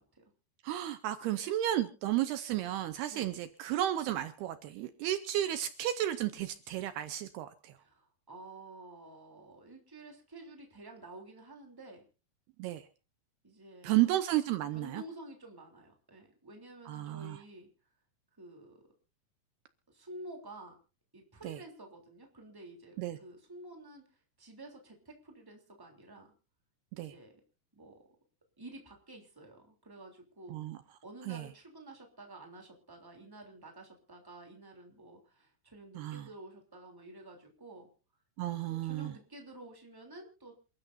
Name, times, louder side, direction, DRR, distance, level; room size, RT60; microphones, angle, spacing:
voice 1, 0.6-7.7 12.6-12.8 13.8-15.0 16.9-17.4 21.4-21.6 23.0-23.2 27.0-27.1 30.5-30.8 31.3-31.4 36.0-36.3 38.4-39.1, right 13 dB, 75° right, 10 dB, 2.6 m, -33 dB
voice 2, 7.8-12.0 13.4-14.1 14.7-17.7 18.4-18.8 19.9-20.7 21.1-24.0 24.4-26.3 26.9-27.3 27.7-28.0 28.6-30.6 31.0-37.9 38.7-40.6, right 2 dB, 5° right, 2 dB, 2.7 m, -51 dB
28.0 x 12.5 x 2.7 m, 0.34 s
omnidirectional pair, 4.9 m